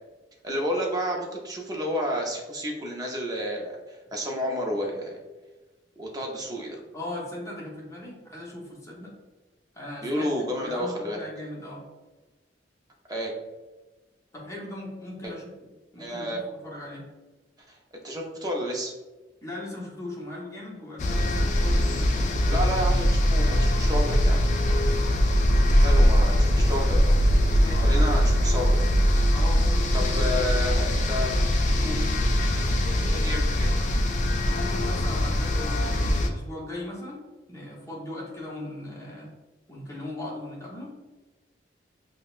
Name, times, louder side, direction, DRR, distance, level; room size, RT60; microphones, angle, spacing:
voice 1, 0.4-5.1 6.0-6.8 10.0-11.2 13.1-13.3 15.2-15.3 16.0-16.4 17.7-17.8 18.0-18.9 22.5-24.4 25.8-27.2 27.8-28.7 29.9-31.4 33.1-33.7, equal, 20° right, 0 dB, 0.6 m, -30 dB
voice 2, 6.9-9.1 9.7-10.3 10.6-11.9 14.3-15.5 15.9-17.1 19.4-22.3 26.0-26.2 27.6-27.9 29.3-30.3 31.8-32.1 34.5-37.2 37.5-39.3 39.7-40.9, left 1 dB, 20° left, -5 dB, 0.9 m, -38 dB
sound 1, 21.0-36.3, equal, 45° left, 0.3 m, -22 dB
5.4 x 2.1 x 2.4 m, 1.2 s
head